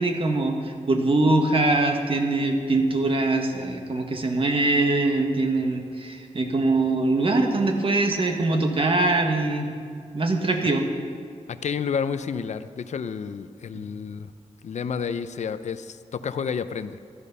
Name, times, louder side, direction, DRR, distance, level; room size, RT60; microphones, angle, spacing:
voice 1, 0.0-9.7 10.1-10.8, right 2 dB, 50° right, 3 dB, 1.6 m, -23 dB
voice 2, 11.5-14.3 14.6-17.0, left 6 dB, 75° left, 12 dB, 0.6 m, -30 dB
15.0 x 11.5 x 5.5 m, 2.2 s
wide cardioid pair, 90°, 12 cm